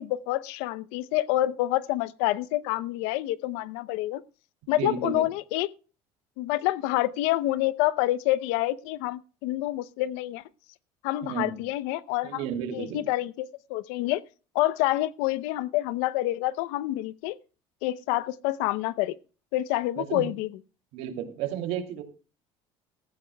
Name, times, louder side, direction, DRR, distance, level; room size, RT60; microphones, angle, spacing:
voice 1, 0.0-4.2 4.7-5.7 6.4-10.4 11.0-12.5 12.7-14.2 14.5-17.4 17.8-19.2 19.5-20.5, left 16 dB, 90° left, 0.7 m, -27 dB
voice 2, 4.8-5.2 11.2-11.6 12.2-13.0 19.9-20.3 20.9-22.0, right 9 dB, 70° right, 2.7 m, -32 dB
18.5 x 14.5 x 2.2 m
cardioid pair, 150°, 11 cm